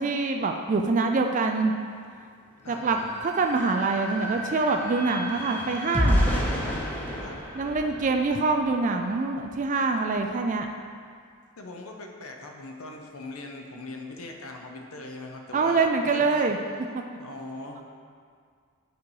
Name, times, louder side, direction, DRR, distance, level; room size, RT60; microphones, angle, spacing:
voice 1, 0.0-1.7 2.7-6.3 7.5-10.7 15.5-16.6, right 3 dB, 35° right, 4 dB, 0.3 m, -25 dB
voice 2, 2.6-3.2 7.2-7.4 11.6-16.4 16.7-16.8 17.2-17.8, left 2 dB, 70° left, 2 dB, 0.8 m, -41 dB
sound 1, 2.6-9.5, equal, 30° left, 1.5 m, -39 dB
sound 2, 3.0-3.1 3.4-8.9 9.4-9.6 9.9-10.2, equal, 5° left, 0.9 m, -30 dB
8.3 x 4.1 x 4.7 m, 2.1 s
head